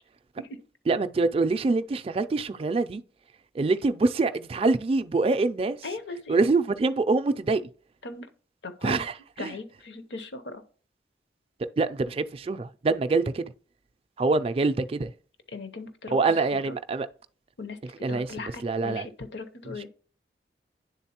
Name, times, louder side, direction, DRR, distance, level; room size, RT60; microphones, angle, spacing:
voice 1, 0.9-3.0 3.5-5.8 6.3-7.6 8.8-9.5 11.8-13.5 14.2-15.1 16.1-17.1 18.0-18.3 18.6-19.1 19.7-19.9, right 3 dB, 30° right, 0.3 m, -25 dB
voice 2, 5.8-6.4 8.0-8.3 8.6-9.0 9.4-10.6 15.5-16.2 16.5-16.8 17.6-19.9, left 3 dB, 70° left, 0.8 m, -38 dB
9.7 x 3.9 x 2.9 m
head